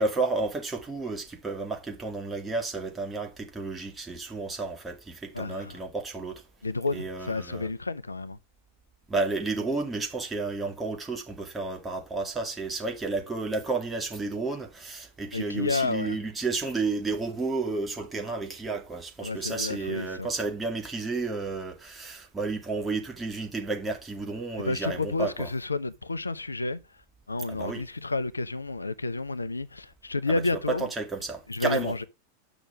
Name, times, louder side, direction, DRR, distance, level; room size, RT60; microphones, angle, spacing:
voice 1, 0.0-6.4 6.9-7.7 9.1-25.5 27.5-27.8 30.3-30.4 30.7-31.9, right 3 dB, 15° right, 2.4 m, -31 dB
voice 2, 5.3-5.8 6.6-8.4 15.3-16.2 19.2-20.3 24.6-27.0 27.3-30.9 31.5-32.0, left 3 dB, 80° left, 0.5 m, -31 dB
8.9 x 6.1 x 5.8 m
figure-of-eight pair, 90°, 0 cm